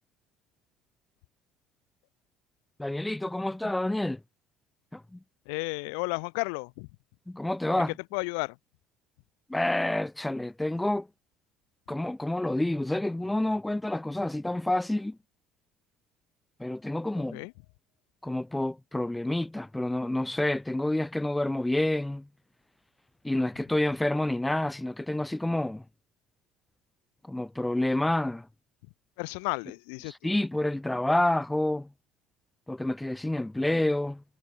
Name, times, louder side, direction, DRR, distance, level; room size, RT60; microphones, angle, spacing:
voice 1, 2.8-4.2 4.9-5.2 7.3-7.9 9.5-11.1 11.9-15.2 16.6-17.4 18.2-22.3 23.2-25.8 27.3-28.5 30.0-31.9 32.7-34.2, left 1 dB, 10° left, 1.6 m, -28 dB
voice 2, 5.5-6.9 8.1-8.6 17.3-17.5 29.2-30.3, left 37 dB, 75° left, 1.8 m, -33 dB
hypercardioid pair, 60°, 0 cm